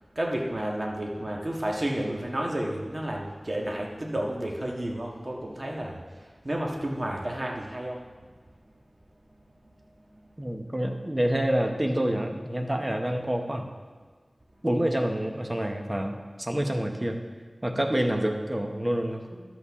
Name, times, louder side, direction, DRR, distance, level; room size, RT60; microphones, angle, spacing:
voice 1, 0.1-6.0 6.4-8.0 10.1-10.2, right 1 dB, 50° right, -1 dB, 1.5 m, -31 dB
voice 2, 10.4-13.7 14.6-17.2 17.6-19.4, right 1 dB, 30° right, 3 dB, 1.1 m, -27 dB
11.5 x 8.3 x 3.7 m, 1.4 s
wide cardioid pair, 45°, 0 cm